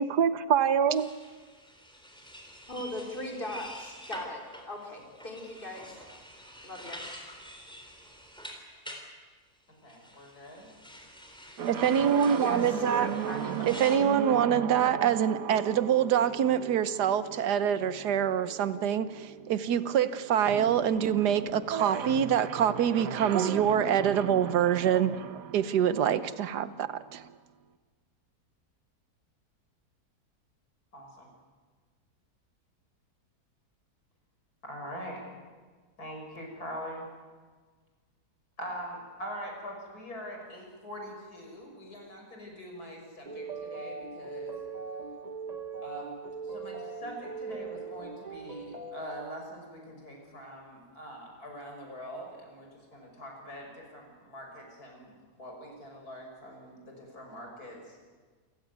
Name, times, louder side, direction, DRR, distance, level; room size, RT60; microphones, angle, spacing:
voice 1, 0.0-1.1 11.7-13.1 13.7-25.2 25.5-27.2, right 9 dB, 90° right, 1.5 m, -25 dB
sound 1, 0.9-9.0 9.9-14.0, equal, 5° left, 3.7 m, -47 dB
voice 2, 2.7-6.0 6.6-7.0 12.4-13.6, left 1 dB, 30° left, 4.2 m, -39 dB
voice 3, 9.8-10.7 30.9-31.3 34.6-35.3 36.0-37.1 38.6-44.6 45.8-58.0, equal, 70° left, 6.5 m, -43 dB
sound 2, 11.6-27.3, right 8 dB, 65° right, 1.4 m, -38 dB
sound 3, 43.2-49.1, right 4 dB, 25° right, 1.5 m, -40 dB
28.5 x 16.0 x 9.4 m
omnidirectional pair, 1.7 m